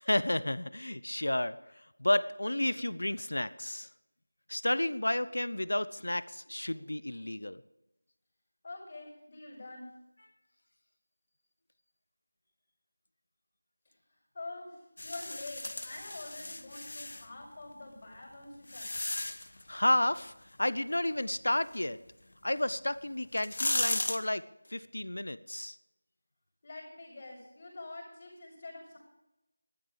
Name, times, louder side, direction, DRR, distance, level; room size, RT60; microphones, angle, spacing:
voice 1, 0.0-1.6 2.0-3.9 4.5-7.6 19.7-20.3 20.6-22.0 22.4-24.4 24.7-25.8, left 1 dB, 85° left, 16 dB, 0.7 m, -31 dB
voice 2, 8.6-9.9 14.3-19.1 26.6-29.0, left 2 dB, 30° left, -4 dB, 6.2 m, -46 dB
sound 1, 15.0-17.3 18.0-19.6 22.6-22.7 23.2-24.2, left 2 dB, 65° left, 1.1 m, -35 dB
13.5 x 12.5 x 5.0 m, 0.91 s
figure-of-eight pair, 175°, 0 cm